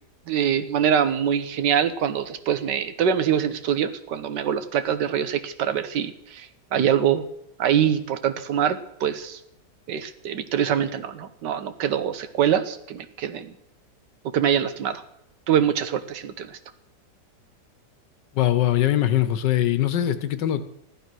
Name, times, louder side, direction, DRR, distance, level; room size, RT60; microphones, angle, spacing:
voice 1, 0.3-7.3 7.6-9.4 9.9-13.5 14.3-15.0 15.5-16.6, right 9 dB, 80° right, 11 dB, 1.6 m, -24 dB
voice 2, 18.3-20.6, left 12 dB, 85° left, 12 dB, 1.6 m, -22 dB
14.5 x 11.5 x 6.2 m, 0.80 s
omnidirectional pair, 1.9 m